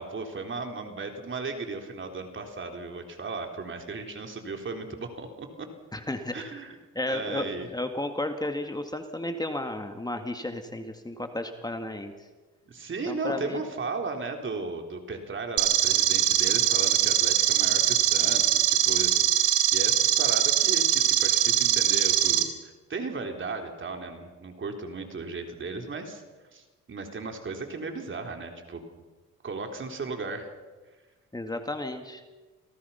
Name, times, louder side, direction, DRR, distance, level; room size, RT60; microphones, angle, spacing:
voice 1, 0.0-5.7 6.3-6.8 7.1-7.7 12.7-26.2 26.5-28.8 29.4-30.5, right 3 dB, 40° right, 4 dB, 3.9 m, -36 dB
voice 2, 5.9-6.5 7.0-7.5 7.7-12.1 13.1-13.6 31.3-32.2, left 1 dB, 15° left, 6 dB, 2.1 m, -33 dB
sound 1, 15.6-22.4, right 11 dB, 85° right, 2.5 m, -22 dB
28.5 x 18.0 x 5.8 m, 1.2 s
cardioid pair, 90°, 30 cm